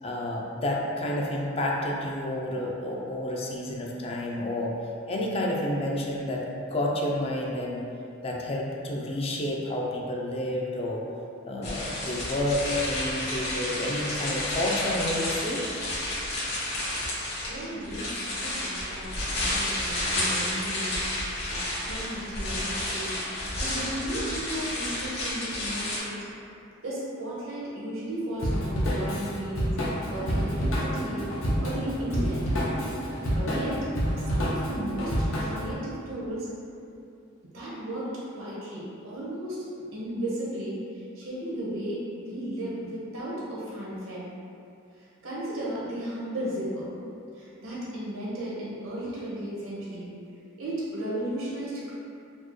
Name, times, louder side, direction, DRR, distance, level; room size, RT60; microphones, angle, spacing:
voice 1, 0.0-4.7 5.1-7.9 8.2-11.0 11.4-15.7, left 1 dB, 30° left, -2 dB, 0.4 m, -30 dB
sound 1, 11.6-26.0, left 1 dB, 55° left, 1.2 m, -31 dB
voice 2, 17.5-21.0 21.5-26.2 26.8-29.8 30.1-31.2 31.6-32.4 33.3-33.9 34.2-36.5 37.5-39.6 39.9-44.3 45.2-46.9 47.4-50.1 50.6-51.9, right 1 dB, 85° right, -7 dB, 1.0 m, -35 dB
Drum kit / Drum, 28.4-35.7, equal, 85° left, 0.7 m, -28 dB
sound 2, 30.2-35.8, right 1 dB, 50° right, 0.4 m, -39 dB
4.2 x 2.1 x 3.0 m, 2.6 s
head